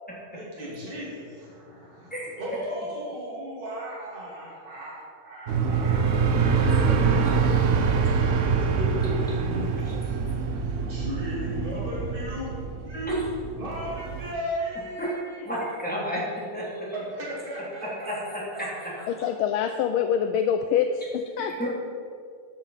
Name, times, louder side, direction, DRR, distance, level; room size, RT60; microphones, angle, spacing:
voice 1, 0.3-7.9 8.2-12.5 12.8-13.3 13.6-15.5 16.9-19.0, equal, 25° right, -6 dB, 2.9 m, -36 dB
sound 1, 5.5-14.3, right 5 dB, 60° right, 0.7 m, -25 dB
voice 2, 15.0-16.9 18.1-18.9 21.4-21.7, equal, 5° left, -7 dB, 3.0 m, -32 dB
voice 3, 19.1-21.6, left 8 dB, 85° left, 7 dB, 1.4 m, -25 dB
13.0 x 7.1 x 5.7 m, 2.3 s
omnidirectional pair, 2.3 m